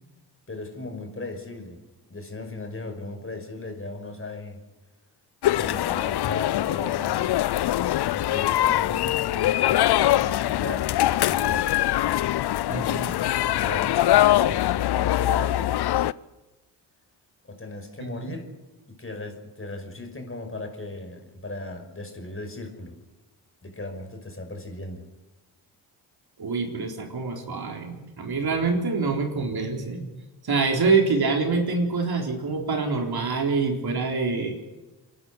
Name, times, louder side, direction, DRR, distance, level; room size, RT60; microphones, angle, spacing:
voice 1, 0.5-1.8 2.1-4.6 5.5-7.4 8.1-11.7 13.4-15.7 17.5-18.5 18.9-22.9 23.6-25.0, left 2 dB, 25° left, 4 dB, 5.9 m, -37 dB
sound 1, 5.4-16.1, left 14 dB, 55° left, 0.7 m, -23 dB
voice 2, 12.7-13.1 18.0-18.4 26.4-30.0 30.4-34.5, right 4 dB, 50° right, 2 dB, 4.1 m, -25 dB
27.0 x 11.0 x 9.9 m, 1.1 s
hypercardioid pair, 45°, 48 cm